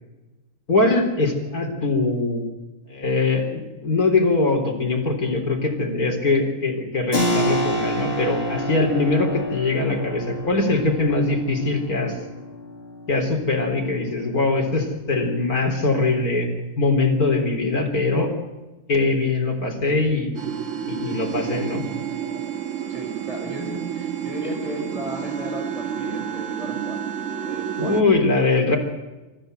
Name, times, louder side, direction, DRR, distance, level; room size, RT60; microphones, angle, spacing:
voice 1, 0.7-2.4 2.9-12.1 13.1-16.5 16.8-18.3 18.9-20.3 20.9-21.8 27.8-28.8, left 3 dB, 85° left, 2 dB, 4.3 m, -22 dB
Keyboard (musical), 7.1-17.5, equal, 45° left, 2.8 m, -30 dB
sound 1, 20.4-28.0, right 8 dB, 60° right, 1.7 m, -30 dB
voice 2, 22.9-27.0 27.4-27.9, equal, 25° right, 1 dB, 6.4 m, -36 dB
25.0 x 14.5 x 7.9 m, 1.1 s
omnidirectional pair, 1.5 m